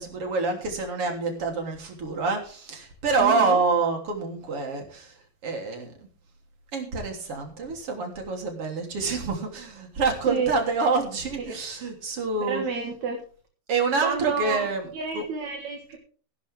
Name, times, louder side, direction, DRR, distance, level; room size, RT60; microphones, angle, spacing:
voice 1, 0.0-5.2 5.4-5.9 6.7-12.7 13.7-14.9 15.1-15.2, right 4 dB, 40° right, 3 dB, 4.0 m, -27 dB
voice 2, 3.2-3.6 10.3-10.5 11.5-11.6 12.5-13.2 14.0-14.7 14.9-16.0, right 6 dB, 60° right, 3 dB, 2.9 m, -29 dB
19.0 x 10.5 x 3.6 m, 0.41 s
omnidirectional pair, 4.0 m